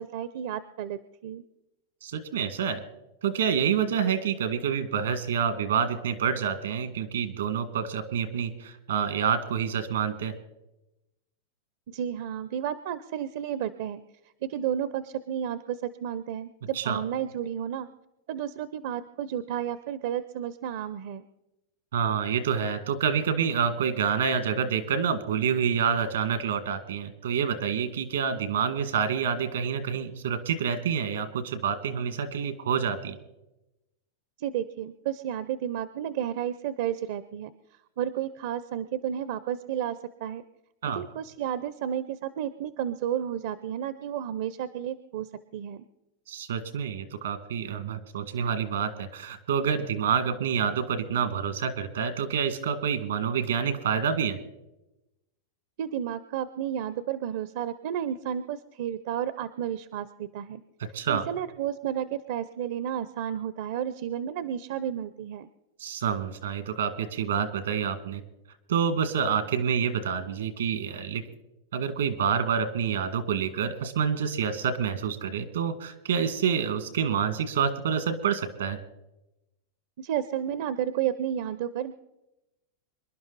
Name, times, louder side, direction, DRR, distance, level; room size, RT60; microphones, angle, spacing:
voice 1, 0.0-1.4 11.9-14.0 14.4-17.9 18.3-21.2 34.4-37.5 38.0-40.4 40.9-45.8 55.8-60.6 61.1-65.5 80.0-81.9, right 10 dB, 65° right, 15 dB, 0.6 m, -32 dB
voice 2, 2.0-2.8 3.2-10.4 16.7-17.0 21.9-33.2 40.8-41.0 46.3-54.4 60.9-61.2 65.8-68.2 68.7-71.2 71.7-78.8, right 7 dB, 85° right, 11 dB, 1.9 m, -27 dB
26.0 x 11.0 x 4.0 m, 0.96 s
hypercardioid pair, 120°, 0 cm